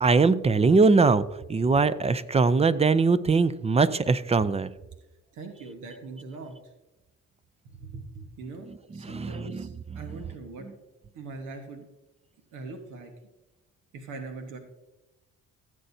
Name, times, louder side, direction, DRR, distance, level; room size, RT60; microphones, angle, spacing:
voice 1, 0.0-1.2 1.5-4.7 9.0-9.6, right 4 dB, 20° right, 15 dB, 0.4 m, -21 dB
voice 2, 5.3-6.7 7.6-9.7 9.9-10.7 11.1-11.9 12.5-13.1 13.9-14.6, right 3 dB, 90° right, 4 dB, 1.3 m, -41 dB
15.5 x 7.7 x 2.7 m, 1.0 s
cardioid pair, 90°, 30 cm